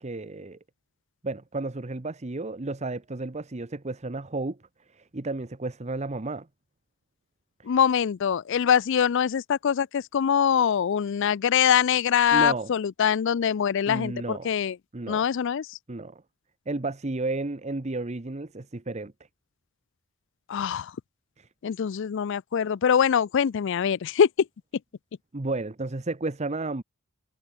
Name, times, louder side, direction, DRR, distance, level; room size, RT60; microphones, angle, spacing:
voice 1, 0.0-0.6 1.2-4.6 4.9-6.5 12.3-12.7 13.9-14.5 14.9-15.3 15.9-16.2 16.7-19.1 21.4-21.5 25.3-26.8, right 2 dB, 35° right, 0.9 m, -32 dB
voice 2, 7.7-14.8 15.1-15.7 20.5-20.9 21.6-24.3, left 8 dB, 60° left, 0.4 m, -23 dB
head